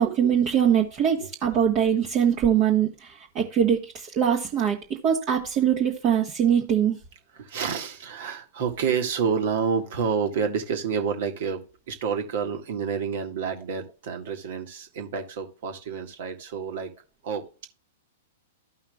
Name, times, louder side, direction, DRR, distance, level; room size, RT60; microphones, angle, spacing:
voice 1, 0.0-3.8 4.2-4.8 5.0-7.0, right 8 dB, 35° right, 1.5 m, -22 dB
voice 2, 7.3-16.9 17.2-17.6, right 6 dB, 55° right, 1.9 m, -29 dB
15.0 x 5.6 x 2.3 m
figure-of-eight pair, 105°, 0 cm